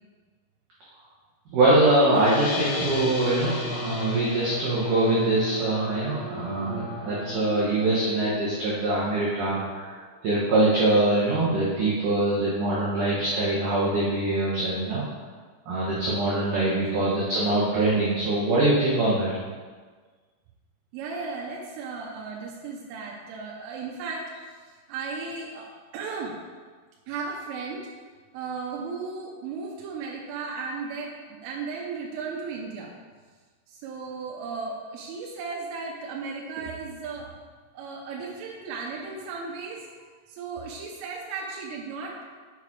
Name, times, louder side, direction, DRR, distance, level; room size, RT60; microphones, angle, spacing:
voice 1, 1.5-15.0 15.7-19.3, right 2 dB, 65° right, -7 dB, 2.0 m, -23 dB
sound 1, 2.1-8.3, left 3 dB, 70° left, 2.7 m, -36 dB
sound 2, 2.2-9.1, equal, 40° left, 2.4 m, -37 dB
voice 2, 16.7-17.0 20.9-24.6 24.9-26.4 27.1-27.9 28.3-32.9 33.7-37.3 37.7-39.9 40.3-42.2, right 4 dB, 85° right, -2 dB, 3.4 m, -35 dB
7.4 x 6.8 x 4.7 m, 1.5 s
omnidirectional pair, 5.6 m